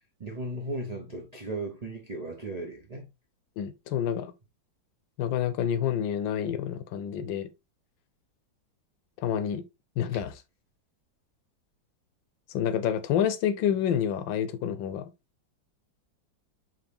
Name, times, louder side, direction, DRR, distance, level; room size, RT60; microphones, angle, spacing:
voice 1, 0.2-3.1 10.1-10.2, right 2 dB, 55° right, 0.4 m, -36 dB
voice 2, 3.6-4.3 5.2-7.5 9.2-9.6 10.0-10.3 12.5-15.1, left 9 dB, 80° left, 1.4 m, -28 dB
5.0 x 2.8 x 3.3 m
omnidirectional pair, 2.0 m